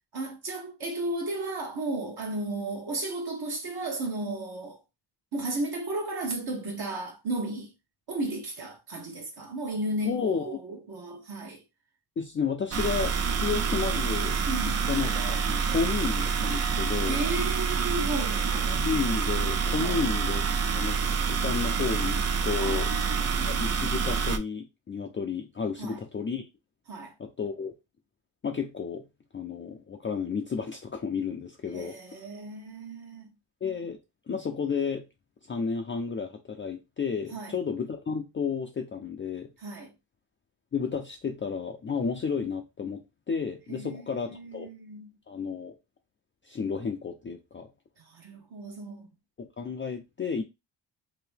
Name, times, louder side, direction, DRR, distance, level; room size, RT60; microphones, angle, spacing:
voice 1, 0.1-4.8 5.3-7.7 8.1-11.6 14.5-14.9 17.1-18.7 19.8-20.0 22.6-23.7 25.8-26.0 26.9-27.1 31.7-33.3 37.3-37.6 39.6-39.9 43.7-45.1 48.0-49.1, right 2 dB, 50° right, 1.1 m, -34 dB
voice 2, 10.0-10.6 12.2-17.2 18.7-20.5 20.7-21.0 21.3-22.9 23.5-26.4 27.2-27.7 28.4-29.0 29.3-32.2 33.6-34.0 34.3-35.1 35.5-39.5 40.7-43.0 43.3-44.7 45.3-45.8 46.4-47.7 49.4-50.4, left 5 dB, 25° left, 0.4 m, -32 dB
sound 1, 12.7-24.4, right 5 dB, 35° right, 0.4 m, -27 dB
2.9 x 2.6 x 3.4 m
cardioid pair, 85°, 48 cm